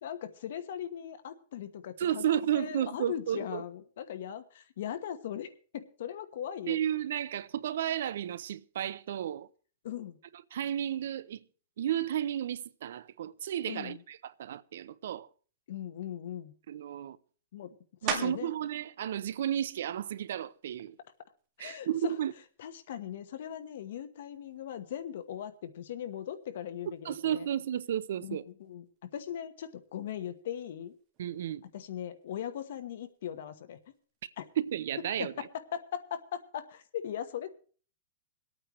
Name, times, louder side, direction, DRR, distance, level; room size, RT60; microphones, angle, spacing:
voice 1, 0.0-6.8 9.8-10.2 13.6-14.0 15.7-16.5 17.5-17.7 18.0-18.6 21.6-22.2 22.6-27.5 28.2-30.9 31.7-33.8 34.4-34.5 35.2-37.5, left 10 dB, 60° left, 1.1 m, -39 dB
voice 2, 2.0-3.6 6.7-9.5 10.5-11.4 11.8-15.3 16.7-17.2 18.0-21.0 21.6-22.3 27.0-28.4 31.2-31.6 34.6-35.5, right 10 dB, 70° right, 0.6 m, -33 dB
sound 1, 18.1-18.7 19.2-23.6 24.2-29.3 29.6-35.3, right 6 dB, 25° right, 1.9 m, -45 dB
26.5 x 8.9 x 3.1 m
supercardioid pair, 165°, 0 cm